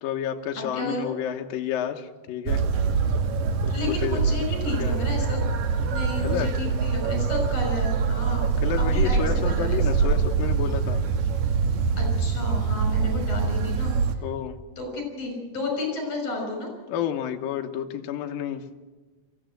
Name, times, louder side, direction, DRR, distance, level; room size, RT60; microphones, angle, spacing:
voice 1, 0.0-2.6 3.3-3.7 4.0-4.2 4.8-5.0 6.2-6.5 8.6-11.0 14.2-14.6 16.9-18.6, left 9 dB, 65° left, 4 dB, 2.5 m, -30 dB
voice 2, 0.6-1.1 3.7-5.4 5.9-10.2 12.0-14.2 14.8-16.7, left 2 dB, 40° left, 2 dB, 6.9 m, -32 dB
sound 1, 2.5-14.1, right 5 dB, 70° right, 1.9 m, -24 dB
sound 2, 5.8-14.2, right 3 dB, 90° right, 6.8 m, -49 dB
23.0 x 15.0 x 7.8 m, 1.3 s
omnidirectional pair, 4.9 m